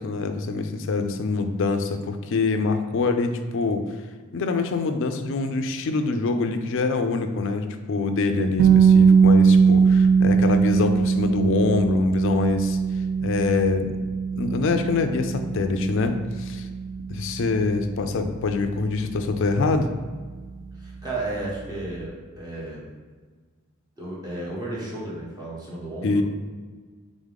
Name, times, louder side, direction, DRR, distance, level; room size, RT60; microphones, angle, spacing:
voice 1, 0.0-3.8 4.3-12.8 13.2-13.9 14.3-16.7 17.1-19.9 26.0-26.2, left 3 dB, 65° left, 7 dB, 0.4 m, -25 dB
sound 1, 8.6-20.4, right 6 dB, 45° right, 0.3 m, -21 dB
voice 2, 20.8-22.9 24.0-26.2, right 2 dB, 20° right, -6 dB, 1.2 m, -33 dB
3.6 x 3.6 x 3.6 m, 1.5 s
head